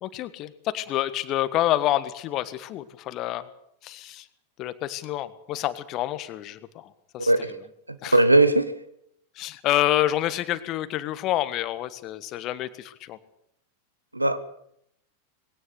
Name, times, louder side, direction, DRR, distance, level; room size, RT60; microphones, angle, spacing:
voice 1, 0.0-3.5 3.8-4.3 4.6-7.3 8.0-8.2 9.3-13.2, left 13 dB, 35° left, 14 dB, 1.5 m, -28 dB
voice 2, 7.2-7.5 8.1-8.7 14.1-14.4, right 2 dB, 85° right, 13 dB, 1.5 m, -18 dB
20.0 x 17.5 x 8.1 m, 0.72 s
figure-of-eight pair, 90°, 0 cm